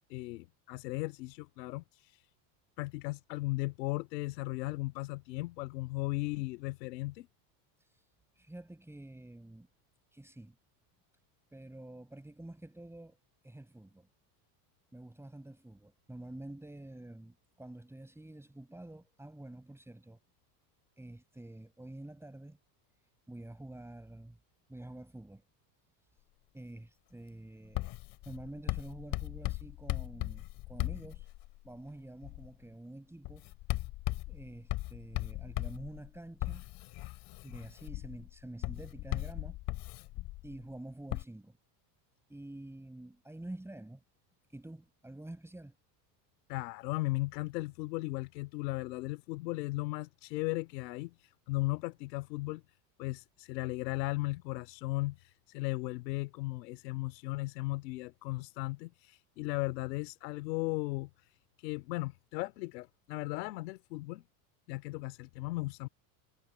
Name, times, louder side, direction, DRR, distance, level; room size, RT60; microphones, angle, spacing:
voice 1, 0.1-2.3 2.8-7.3 46.5-52.6 53.0-64.2 64.7-65.9, left 21 dB, 85° left, 3.0 m, -36 dB
voice 2, 8.4-9.7 10.1-10.5 11.5-13.2 13.4-14.1 14.9-20.2 21.0-22.6 23.3-24.4 24.7-25.4 26.5-27.9 28.3-31.3 31.6-33.5 34.3-36.6 37.4-39.6 40.4-41.6 42.3-44.0 44.5-45.7, right 1 dB, 5° right, 7.3 m, -48 dB
Writing, 27.7-31.7 32.2-32.5 33.2-40.6 41.1-41.2, left 19 dB, 55° left, 3.1 m, -38 dB
supercardioid pair, 130°, 48 cm